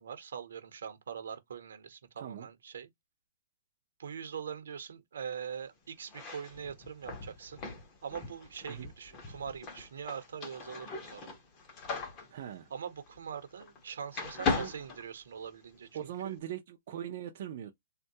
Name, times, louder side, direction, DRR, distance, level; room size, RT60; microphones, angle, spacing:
voice 1, 0.0-2.9 4.0-7.6 8.0-11.3 12.7-16.4, right 7 dB, 70° right, 0.8 m, -43 dB
sound 1, 6.0-13.8 14.1-15.8, left 4 dB, 20° left, 0.6 m, -39 dB
voice 2, 12.3-12.7 14.5-14.7 15.9-17.7, right 10 dB, 35° right, 0.4 m, -40 dB
3.6 x 2.2 x 2.7 m
hypercardioid pair, 175°, 0 cm